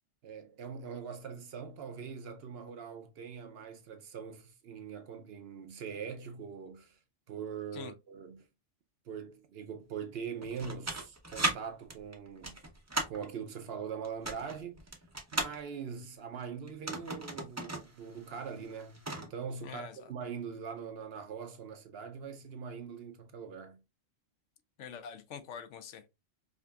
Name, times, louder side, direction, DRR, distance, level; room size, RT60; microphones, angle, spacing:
voice 1, 0.2-7.0 7.3-8.5 9.1-12.6 13.1-14.8 15.3-23.8, right 6 dB, 60° right, 0.7 m, -42 dB
sound 1, 10.4-11.6 11.9-13.3 14.0-15.6 16.7-17.9 18.2-18.3 18.6-19.3, right 2 dB, 20° right, 0.5 m, -35 dB
voice 2, 19.6-20.1 24.8-26.1, left 7 dB, 75° left, 0.9 m, -45 dB
5.0 x 2.6 x 2.3 m
omnidirectional pair, 1.3 m